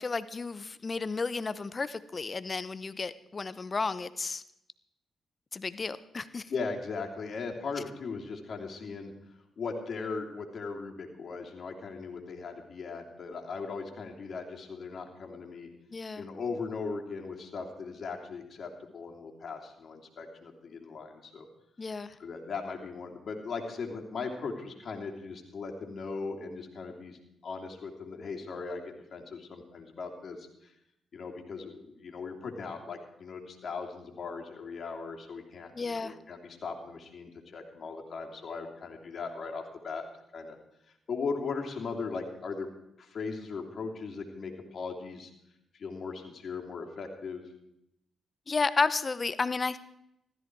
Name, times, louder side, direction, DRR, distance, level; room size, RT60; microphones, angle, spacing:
voice 1, 0.0-4.4 5.5-6.5 15.9-16.3 21.8-22.1 35.7-36.2 48.5-49.8, left 4 dB, 40° left, 15 dB, 0.9 m, -32 dB
voice 2, 6.5-9.1 9.6-15.7 16.2-21.5 22.2-30.7 31.1-40.1 40.3-40.6 41.1-42.7 43.0-45.3 45.7-47.4, left 4 dB, 60° left, 1 dB, 3.1 m, -38 dB
15.5 x 13.5 x 4.7 m, 0.79 s
supercardioid pair, 55°, 0 cm